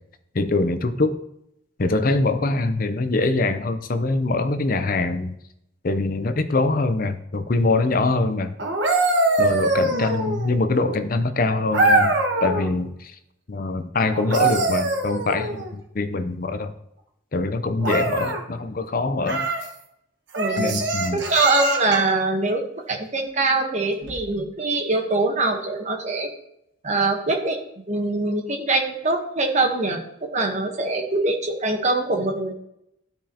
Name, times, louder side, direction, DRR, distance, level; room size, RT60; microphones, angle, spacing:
voice 1, 0.3-1.2 1.8-5.3 5.8-8.5 9.4-13.2 13.5-16.7 17.3-19.5 20.6-21.2, left 3 dB, 50° left, 9 dB, 0.6 m, -23 dB
sound 1, 8.6-10.6 11.7-12.7 14.1-15.7 17.8-18.4 19.2-19.7 20.3-22.1 24.0-24.2, right 2 dB, 70° right, 1.1 m, -23 dB
voice 2, 20.4-20.8 21.3-26.3 26.8-27.6 27.9-32.5, right 2 dB, 40° right, 3 dB, 1.2 m, -23 dB
12.5 x 5.3 x 2.9 m, 0.79 s
head